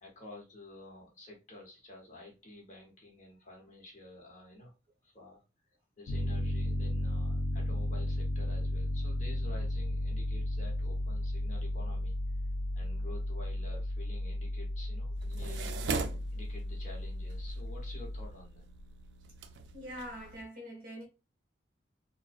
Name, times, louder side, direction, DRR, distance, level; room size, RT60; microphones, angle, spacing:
voice 1, 0.0-4.7 5.0-5.4 6.0-12.2 12.7-15.8 16.3-18.7, left 1 dB, 40° left, 0.8 m, -50 dB
Piano, 6.1-18.3, left 1 dB, 60° left, 0.4 m, -34 dB
sound 1, 15.2-20.4, right 4 dB, 70° right, 0.3 m, -41 dB
voice 2, 19.7-21.0, equal, 50° right, 1.0 m, -43 dB
2.5 x 2.1 x 2.4 m
head